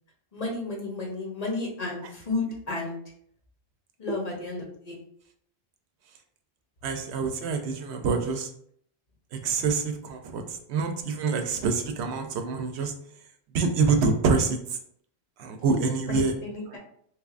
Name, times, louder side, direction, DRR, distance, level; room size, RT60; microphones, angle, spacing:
voice 1, 0.3-3.0 4.0-5.0 16.1-16.6, left 3 dB, 45° left, -2 dB, 0.8 m, -32 dB
voice 2, 6.8-8.5 9.4-10.4 10.7-12.9 13.5-14.6 15.4-16.3, right 4 dB, 90° right, 5 dB, 0.9 m, -26 dB
3.4 x 3.1 x 2.4 m, 0.66 s
omnidirectional pair, 1.1 m